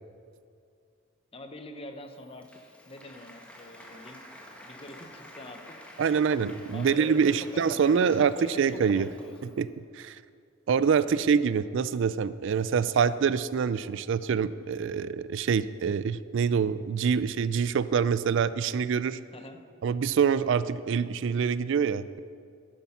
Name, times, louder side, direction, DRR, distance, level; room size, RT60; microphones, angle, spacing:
voice 1, 1.3-4.2 4.6-6.4 6.7-9.6 11.0-11.2 19.3-19.6, left 1 dB, 30° left, 6 dB, 0.9 m, -45 dB
Applause, 2.0-9.7, left 1 dB, 5° left, 1.4 m, -50 dB
voice 2, 6.0-9.1 9.6-10.2 10.7-19.2 19.8-22.2, right 6 dB, 65° right, 16 dB, 0.3 m, -25 dB
11.0 x 10.0 x 5.6 m, 2.3 s
head